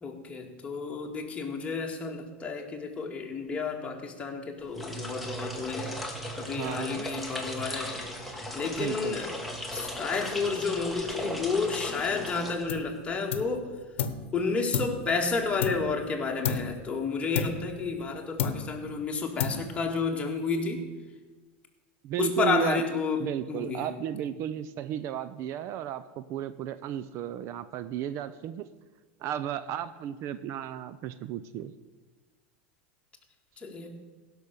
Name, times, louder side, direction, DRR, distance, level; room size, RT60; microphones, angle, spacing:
voice 1, 0.0-9.3 9.7-13.7 14.3-20.9 22.2-23.9 33.6-34.0, left 4 dB, 20° left, 1 dB, 2.0 m, -31 dB
sound 1, 4.6-13.1, equal, ahead, 1.6 m, -37 dB
voice 2, 6.6-7.1 8.8-9.2 22.0-22.8 23.2-28.7 29.2-31.7, right 11 dB, 50° right, 13 dB, 0.5 m, -34 dB
sound 2, 12.7-13.0 13.3-14.3 14.7-16.1 16.4-16.9 17.3-18.1 18.4-18.9 19.4-19.9, left 7 dB, 90° left, 0.9 m, -32 dB
16.0 x 6.2 x 6.7 m, 1.3 s
supercardioid pair, 120°, 6 cm